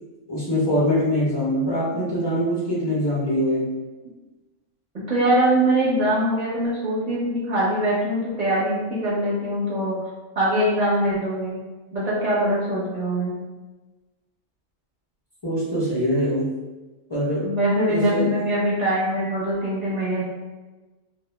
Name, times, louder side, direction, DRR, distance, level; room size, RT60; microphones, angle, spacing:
voice 1, 0.3-3.7 15.4-16.5 17.1-17.5 17.9-18.3, equal, 45° left, -9 dB, 0.3 m, -23 dB
voice 2, 5.1-9.9 10.3-11.6 11.9-13.3 17.4-20.2, right 1 dB, 40° right, -8 dB, 0.8 m, -22 dB
2.2 x 2.0 x 3.1 m, 1.2 s
omnidirectional pair, 1.3 m